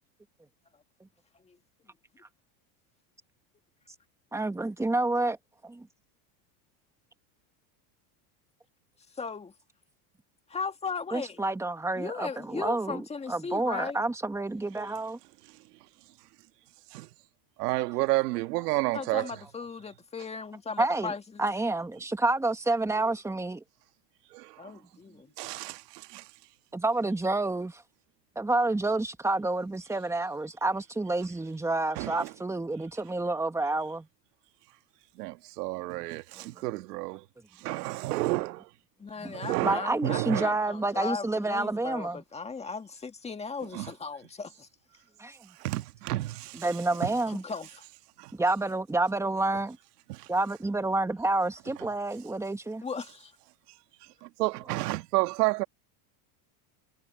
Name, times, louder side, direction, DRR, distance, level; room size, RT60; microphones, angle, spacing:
voice 1, 4.3-5.4 5.6-5.9 11.1-15.2 20.8-21.1 21.4-23.6 26.7-27.8 28.3-34.1 36.4-36.5 39.2-39.3 39.6-42.2 45.2-45.5 46.5-47.4 48.3-49.8 50.3-52.8, right 2 dB, 5° right, 1.6 m, -29 dB
voice 2, 9.1-9.5 10.5-11.4 12.0-14.0 18.9-21.5 24.6-25.3 39.0-44.7 47.3-47.8 52.8-53.3, left 5 dB, 15° left, 1.9 m, -37 dB
voice 3, 17.6-19.3 24.3-24.7 25.4-26.3 31.9-32.3 35.2-37.2 37.6-38.7 39.3-40.5 43.7-43.9 45.6-46.7 47.0-47.1 48.2-48.3 50.1-50.3 54.2-55.6, right 20 dB, 85° right, 1.8 m, -31 dB
supercardioid pair, 135°, 46 cm